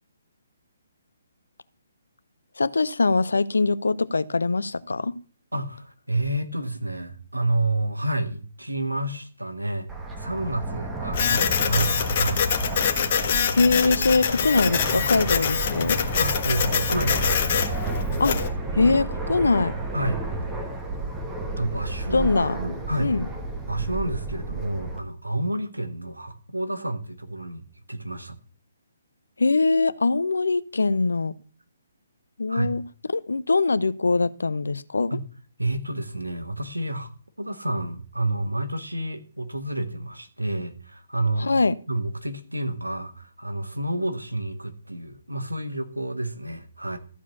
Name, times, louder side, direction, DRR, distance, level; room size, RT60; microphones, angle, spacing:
voice 1, 2.6-5.1 13.5-16.0 18.2-18.3 18.7-19.7 22.1-22.6 23.0-23.3 29.4-31.3 32.4-32.8 33.1-35.2 41.4-41.7, left 3 dB, 75° left, 16 dB, 0.7 m, -22 dB
voice 2, 5.5-9.9 10.2-12.4 16.2-17.3 19.9-20.2 21.6-22.3 22.5-23.2 23.7-27.6 27.9-28.4 32.5-32.7 35.1-35.2 35.6-37.1 37.4-41.6 41.9-47.0, right 1 dB, 90° right, 8 dB, 1.6 m, -29 dB
Fixed-wing aircraft airplane, 9.9-25.0, right 2 dB, 10° right, 1.7 m, -31 dB
Printer, 11.1-18.5, left 7 dB, 40° left, 1.6 m, -25 dB
14.0 x 4.9 x 7.1 m, 0.42 s
figure-of-eight pair, 135°, 0 cm